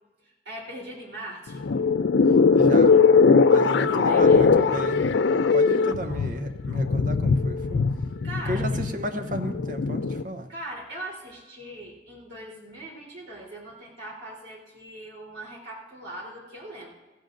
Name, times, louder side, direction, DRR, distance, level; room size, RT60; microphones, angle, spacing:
voice 1, 0.2-1.6 3.5-4.4 5.5-6.2 8.2-8.6 10.5-16.9, right 1 dB, 75° right, -3 dB, 3.6 m, -40 dB
sound 1, 1.5-10.2, left 5 dB, 80° left, 0.5 m, -20 dB
voice 2, 2.5-3.0 3.4-5.1 5.3-7.8 8.5-10.5, equal, 45° right, 7 dB, 0.8 m, -33 dB
17.5 x 14.5 x 2.6 m, 1.1 s
head